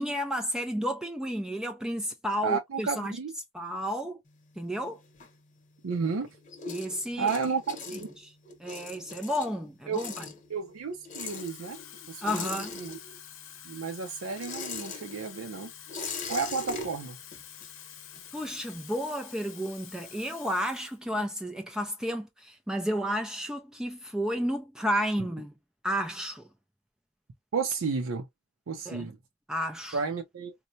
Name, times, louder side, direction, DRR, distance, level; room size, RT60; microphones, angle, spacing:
voice 1, 0.0-3.2 3.5-4.2 4.6-5.0 6.7-7.3 8.2-8.3 8.6-10.3 12.2-12.7 18.3-25.6 25.8-26.5 28.9-29.1 29.5-30.0, equal, 5° right, 0.3 m, -32 dB
voice 2, 2.4-3.3 5.8-6.3 7.2-8.1 9.9-10.0 10.5-11.8 12.1-13.0 13.6-15.7 16.3-17.2 27.5-28.3 28.7-29.2 29.9-30.5, right 5 dB, 80° right, 0.5 m, -32 dB
sound 1, 4.3-5.9 6.2-13.4 13.7-18.4, left 4 dB, 40° left, 0.9 m, -41 dB
Water tap faucet / Fill (with liquid), 11.1-21.0 21.4-21.6, left 10 dB, 65° left, 0.7 m, -48 dB
4.3 x 2.1 x 2.6 m
head